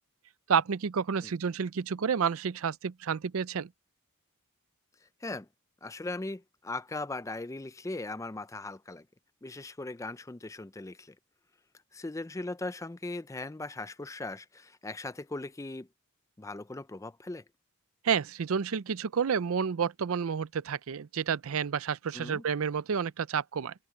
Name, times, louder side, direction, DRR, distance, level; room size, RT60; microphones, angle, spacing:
voice 1, 0.5-3.7 18.0-23.7, right 6 dB, 75° right, 0.5 m, -30 dB
voice 2, 5.0-5.5 5.8-9.1 9.4-11.2 11.9-15.9 16.4-17.4 22.1-22.4, left 2 dB, 15° left, 0.4 m, -39 dB
head